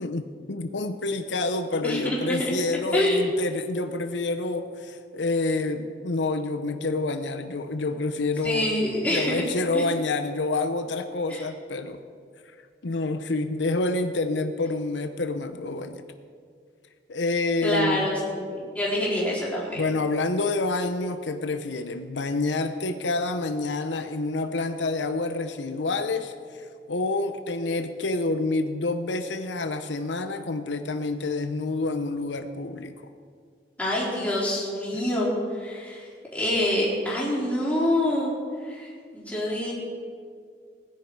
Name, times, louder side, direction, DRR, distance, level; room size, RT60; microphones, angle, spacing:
voice 1, 0.0-8.7 9.1-12.0 12.8-16.0 17.1-18.1 19.8-32.9, left 3 dB, 85° left, 8 dB, 0.8 m, -28 dB
voice 2, 1.8-2.5 2.9-3.3 8.4-9.4 9.7-9.8 11.3-11.4 17.6-19.8 33.8-36.1 36.3-38.3 38.6-39.7, left 1 dB, 10° left, -7 dB, 3.8 m, -26 dB
19.0 x 10.5 x 4.7 m, 2.2 s
head